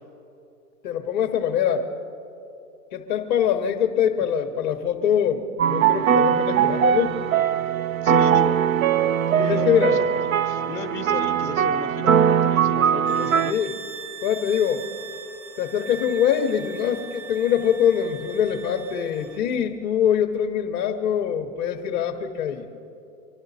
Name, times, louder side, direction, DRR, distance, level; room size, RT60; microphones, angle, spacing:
voice 1, 0.8-1.9 2.9-7.2 9.4-10.0 13.5-13.8 14.2-14.8 15.6-22.7, left 8 dB, 30° left, 2 dB, 0.8 m, -23 dB
sound 1, 5.6-13.5, right 8 dB, 55° right, 0.5 m, -21 dB
voice 2, 8.0-8.6 9.3-10.1 10.4-13.6, left 5 dB, 5° left, 2 dB, 1.1 m, -35 dB
sound 2, 13.0-19.5, right 6 dB, 15° right, 0.6 m, -40 dB
25.5 x 11.5 x 4.1 m, 2.8 s
hypercardioid pair, 155°, 48 cm